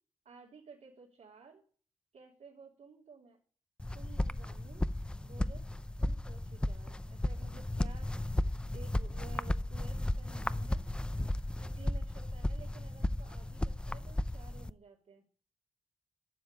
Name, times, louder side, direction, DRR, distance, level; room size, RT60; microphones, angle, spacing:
voice 1, 0.2-1.6 2.1-3.4 3.9-4.9 5.2-5.7 6.0-8.3 8.7-10.9 11.6-15.2, right 4 dB, 80° right, -2 dB, 3.2 m, -55 dB
sound 1, 3.8-14.7, left 1 dB, 10° left, 0.5 m, -35 dB
11.5 x 7.3 x 10.0 m, 0.43 s
wide cardioid pair, 135°, 12 cm